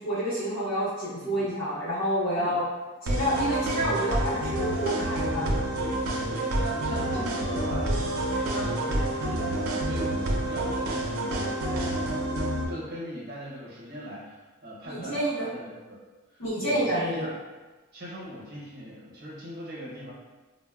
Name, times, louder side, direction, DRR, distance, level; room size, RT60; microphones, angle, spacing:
voice 1, 0.0-2.6 3.0-5.6 14.8-15.5 16.4-17.3, equal, 65° left, -10 dB, 0.7 m, -28 dB
voice 2, 1.2-1.5 2.4-2.6 3.2-3.5 5.8-6.0 6.3-12.4 12.7-16.0 16.3-17.3 17.9-20.1, equal, 45° right, -5 dB, 0.7 m, -40 dB
sound 1, 3.1-12.6, right 1 dB, 90° right, 0.5 m, -28 dB
3.9 x 2.0 x 2.3 m, 1.2 s
head